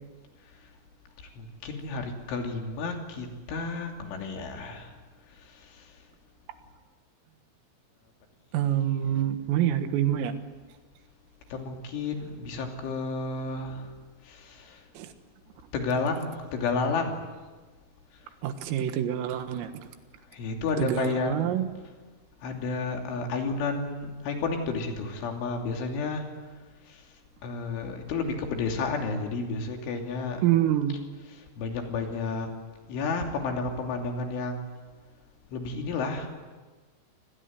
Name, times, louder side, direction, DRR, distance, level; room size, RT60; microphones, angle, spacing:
voice 1, 1.4-5.0 5.3-6.0 11.5-14.0 14.2-14.9 15.7-17.3 18.1-18.2 20.3-21.4 22.4-26.3 26.8-30.4 31.3-32.5 32.9-34.7 35.5-36.3, left 4 dB, 70° left, 3 dB, 5.2 m, -32 dB
voice 2, 8.5-10.3 15.0-15.1 18.4-19.7 20.8-21.7 30.4-31.0, right 11 dB, 80° right, 8 dB, 4.1 m, -26 dB
27.0 x 19.5 x 9.5 m, 1.4 s
omnidirectional pair, 5.9 m